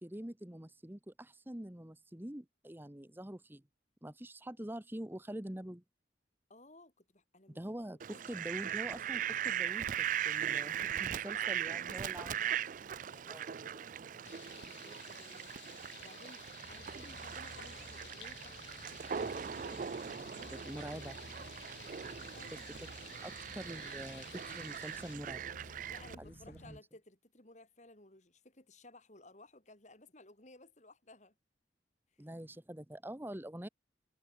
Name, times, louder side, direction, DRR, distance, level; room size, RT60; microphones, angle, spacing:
voice 1, 0.0-3.6 4.0-5.8 7.5-8.0 8.3-12.4 13.3-13.5 20.5-21.2 23.2-25.5 26.2-26.8 32.2-33.7, right 1 dB, 10° right, 1.0 m, -45 dB
voice 2, 6.5-7.8 8.1-8.3 11.3-12.6 13.1-15.5 16.0-21.5 22.1-22.8 25.9-31.3, left 2 dB, 40° left, 4.0 m, -58 dB
Fowl, 8.0-26.1, right 9 dB, 45° right, 0.4 m, -40 dB
sound 1, 14.2-25.2, left 13 dB, 85° left, 1.0 m, -55 dB
sound 2, 16.6-26.8, left 1 dB, 65° left, 2.4 m, -55 dB
head